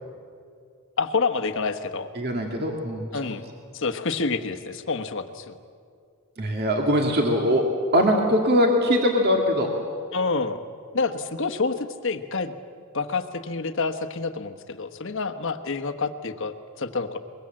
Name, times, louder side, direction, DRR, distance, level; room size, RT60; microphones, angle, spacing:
voice 1, 1.0-2.1 3.1-3.4 3.7-5.6 10.1-10.6 10.9-12.5 12.9-17.2, left 4 dB, 60° left, 8 dB, 1.2 m, -28 dB
voice 2, 2.2-3.1 6.4-7.6 7.9-9.7, equal, 50° right, 1 dB, 2.1 m, -21 dB
24.0 x 22.0 x 7.7 m, 2.3 s
head